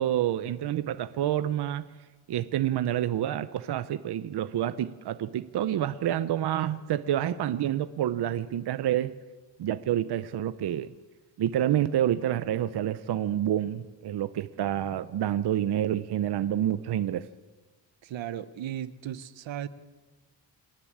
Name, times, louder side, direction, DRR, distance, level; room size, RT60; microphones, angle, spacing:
voice 1, 0.0-1.9 2.3-9.1 9.6-10.9 11.4-17.3, right 11 dB, 60° right, 0.7 m, -28 dB
voice 2, 18.0-19.7, right 10 dB, 85° right, 1.1 m, -36 dB
26.5 x 10.5 x 9.8 m
wide cardioid pair, 135°, 44 cm